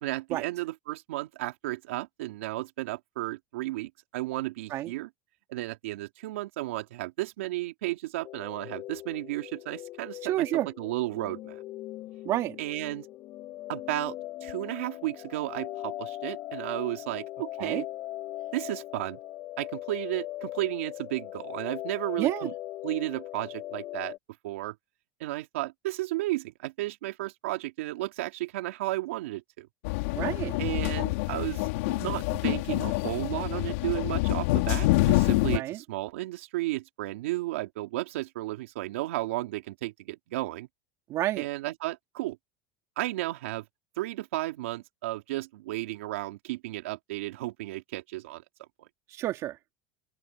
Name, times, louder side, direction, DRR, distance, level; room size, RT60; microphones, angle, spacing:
voice 1, 0.0-5.1 5.5-11.6 12.6-13.1 13.7-14.2 14.4-17.9 18.5-19.2 19.6-22.5 22.8-24.2 24.4-24.7 25.2-29.7 30.6-40.7 41.4-42.4 43.0-43.6 44.0-48.9, right 18 dB, 90° right, 3.0 m, -33 dB
sound 1, 8.2-24.2, left 15 dB, 45° left, 6.5 m, -40 dB
voice 2, 10.3-10.7 12.2-12.6 17.6-17.8 22.2-22.5 30.1-30.5 35.5-35.8 41.1-41.4 49.1-49.6, right 14 dB, 45° right, 3.0 m, -29 dB
sound 2, 29.8-35.6, left 20 dB, 75° left, 2.8 m, -26 dB
open air
supercardioid pair, 135°, 7 cm